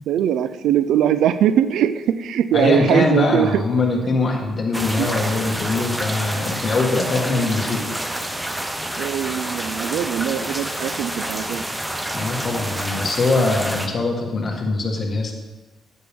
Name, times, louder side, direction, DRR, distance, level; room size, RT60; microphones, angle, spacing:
voice 1, 0.1-3.6 5.0-5.1 9.0-11.6, right 10 dB, 75° right, 13 dB, 0.4 m, -21 dB
voice 2, 2.5-7.9 12.1-15.3, left 3 dB, 40° left, 1 dB, 1.8 m, -22 dB
sound 1, 4.7-13.9, right 1 dB, 10° right, 0.8 m, -28 dB
9.4 x 8.7 x 3.7 m, 1.2 s
cardioid pair, 105°, 0 cm